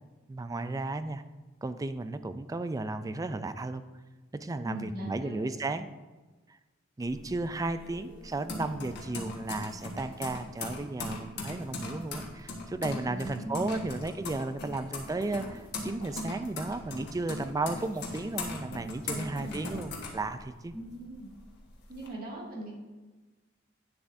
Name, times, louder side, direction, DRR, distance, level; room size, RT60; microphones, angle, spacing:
voice 1, 0.3-1.2 1.6-3.8 4.3-5.9 7.0-20.7, right 2 dB, 15° right, 11 dB, 0.3 m, -34 dB
voice 2, 4.6-5.5 13.1-13.9 19.1-19.6 20.7-21.3 21.9-22.7, right 1 dB, 50° right, -4 dB, 2.2 m, -41 dB
sound 1, 7.0-20.8 21.2-22.1, left 2 dB, 60° left, 1.4 m, -39 dB
9.5 x 6.8 x 2.6 m, 1.2 s
head